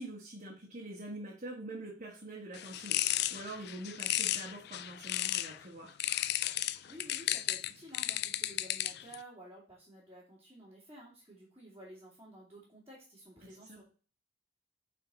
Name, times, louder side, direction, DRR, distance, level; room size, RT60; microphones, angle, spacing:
voice 1, 0.0-6.0 13.4-13.8, right 1 dB, 40° right, -5 dB, 1.7 m, -45 dB
sound 1, 2.5-5.6 6.0-9.2, left 14 dB, 60° left, 0.4 m, -34 dB
voice 2, 6.8-13.8, right 1 dB, 15° right, -8 dB, 2.6 m, -53 dB
8.7 x 4.2 x 4.2 m, 0.38 s
head